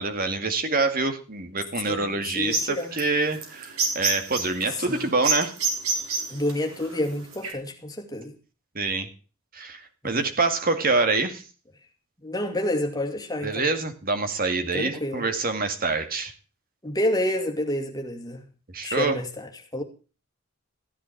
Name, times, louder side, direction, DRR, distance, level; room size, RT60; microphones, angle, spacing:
voice 1, 0.0-5.5 8.8-9.1 9.5-11.4 13.4-16.3 18.7-19.2, right 3 dB, 40° right, 2.1 m, -26 dB
voice 2, 1.9-2.9 4.7-5.1 6.3-8.3 10.0-10.3 12.2-13.7 14.7-15.2 16.8-18.4 18.8-19.8, left 1 dB, 15° left, 2.5 m, -29 dB
sound 1, 2.4-7.5, right 4 dB, 80° right, 4.3 m, -28 dB
14.5 x 10.0 x 4.7 m
head